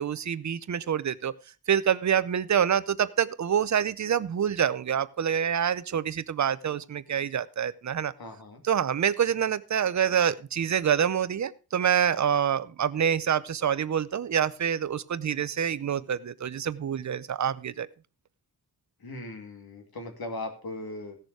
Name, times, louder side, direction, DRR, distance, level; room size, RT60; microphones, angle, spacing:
voice 1, 0.0-1.3 1.7-8.1 8.7-17.9, right 8 dB, 50° right, 16 dB, 0.6 m, -26 dB
voice 2, 8.2-8.6 19.0-21.2, left 2 dB, 70° left, 5 dB, 2.5 m, -38 dB
16.0 x 6.7 x 4.6 m, 0.33 s
wide cardioid pair, 180°, 38 cm